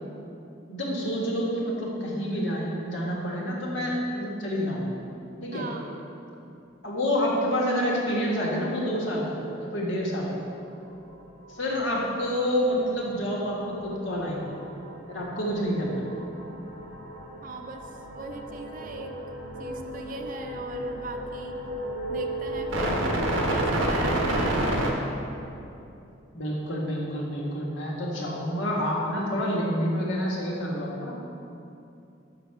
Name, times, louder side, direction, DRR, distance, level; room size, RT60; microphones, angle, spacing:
voice 1, 0.7-5.0 5.4-5.6 6.8-10.4 11.5-14.5 15.1-16.0 26.3-31.1, equal, 70° left, -4 dB, 1.6 m, -28 dB
voice 2, 5.5-6.0 17.4-19.1 19.6-21.6 22.1-23.1 23.5-24.6, right 3 dB, 45° right, 4 dB, 0.5 m, -40 dB
sound 1, 10.9-11.2 11.5-24.9, right 1 dB, 90° right, 1.1 m, -31 dB
6.1 x 6.1 x 5.8 m, 2.7 s
head